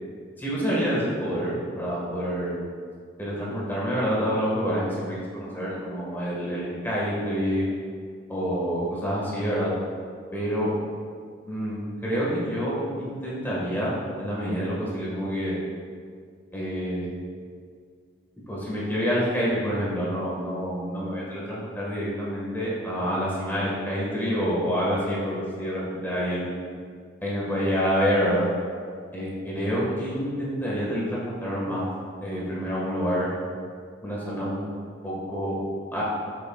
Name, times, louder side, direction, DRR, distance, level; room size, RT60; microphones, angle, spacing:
voice 1, 0.4-2.6 3.2-7.7 8.3-9.7 10.3-10.7 11.5-15.6 16.5-17.1 18.5-26.5 27.2-28.5 29.1-31.9 32.2-33.3 34.0-34.6 35.0-35.6 35.9-36.0, equal, 10° left, -7 dB, 1.8 m, -27 dB
13.5 x 6.5 x 2.5 m, 2.1 s
head